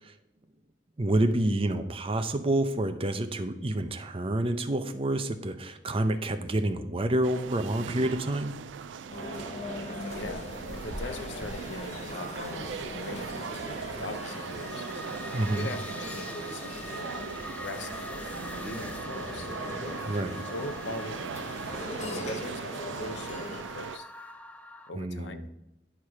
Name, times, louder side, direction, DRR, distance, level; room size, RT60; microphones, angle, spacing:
voice 1, 1.0-8.6 15.3-15.7 20.0-20.4 25.0-25.5, right 1 dB, 30° right, 8 dB, 0.6 m, -28 dB
sound 1, 7.2-24.0, right 6 dB, 90° right, 0.4 m, -40 dB
sound 2, 9.1-23.6, left 2 dB, 40° left, 1.2 m, -40 dB
voice 2, 9.6-14.9 15.5-17.3 17.6-18.2 18.6-19.5 20.5-21.7 22.0-24.1 24.9-25.4, left 2 dB, 75° left, 9 dB, 0.7 m, -41 dB
sound 3, 14.1-24.9, equal, 5° left, 0.4 m, -44 dB
10.0 x 4.7 x 4.7 m, 0.89 s
head